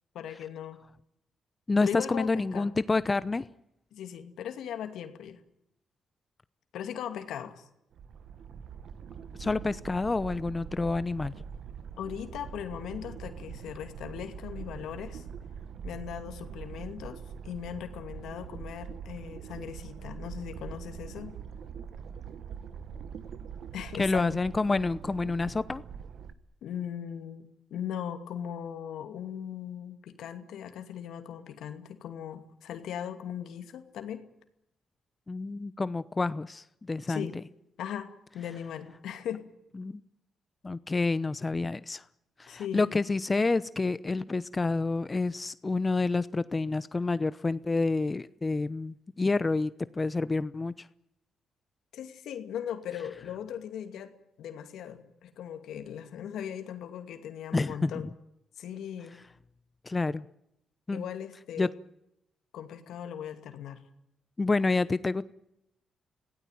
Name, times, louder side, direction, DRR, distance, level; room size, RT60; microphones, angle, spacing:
voice 1, 0.1-0.8 1.8-2.7 3.9-5.4 6.7-7.7 12.0-15.2 15.8-21.3 23.7-24.4 26.6-34.2 37.1-37.3 37.8-39.4 42.5-42.9 51.9-54.1 54.4-58.1 58.6-59.2 60.9-61.7 62.5-63.8, left 9 dB, 75° left, 7 dB, 2.4 m, -39 dB
voice 2, 1.7-3.5 9.4-11.3 23.9-25.8 35.3-37.4 39.7-40.0 40.6-42.0 42.4-50.9 57.5-57.9 59.8-60.2 60.9-61.0 61.6-61.7 64.4-65.2, left 3 dB, 30° left, 16 dB, 0.9 m, -28 dB
sound 1, 7.9-26.3, right 7 dB, 70° right, 1.3 m, -43 dB
26.0 x 17.0 x 9.2 m, 0.83 s
supercardioid pair, 50°, 0 cm